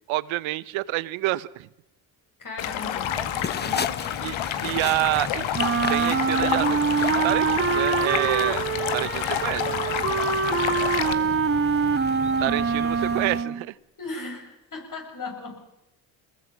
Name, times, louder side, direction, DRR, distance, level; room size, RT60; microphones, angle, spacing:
voice 1, 0.1-1.7 4.2-6.9 7.2-8.6 8.9-9.7 12.4-13.8, right 18 dB, 80° right, 18 dB, 0.9 m, -28 dB
voice 2, 2.4-3.2 3.5-3.9 11.0-11.5 14.0-15.7, left 3 dB, 45° left, 3 dB, 7.7 m, -37 dB
Stream, 2.6-11.1, left 10 dB, 80° left, 1.8 m, -29 dB
sound 1, 3.0-13.4, left 6 dB, 20° left, 0.7 m, -36 dB
Wind instrument woodwind instrument, 5.5-13.7, right 5 dB, 25° right, 1.1 m, -24 dB
23.5 x 20.5 x 7.5 m, 0.87 s
supercardioid pair, 80°, 47 cm